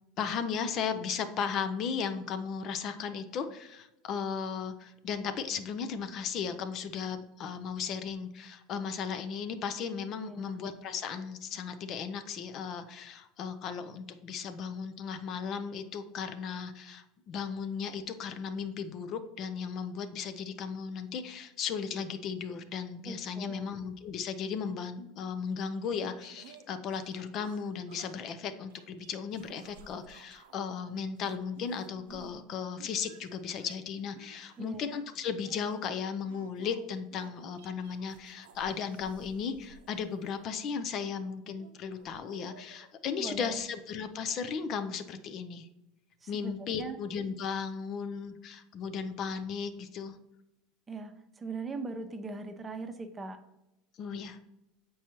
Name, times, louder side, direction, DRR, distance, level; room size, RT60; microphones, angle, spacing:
voice 1, 0.2-45.7 46.3-50.2 54.0-54.4, left 6 dB, 50° left, 10 dB, 0.5 m, -36 dB
voice 2, 10.2-10.6 23.0-23.7 34.6-34.8 43.2-43.6 46.2-47.0 50.9-53.4, right 3 dB, 25° right, 7 dB, 0.7 m, -40 dB
sound 1, 26.2-28.3 28.7-30.6 30.9-32.4 32.8-40.8 41.5-42.9, right 6 dB, 85° right, 0.6 m, -56 dB
7.1 x 4.6 x 3.0 m, 0.91 s
hypercardioid pair, 95°, 0 cm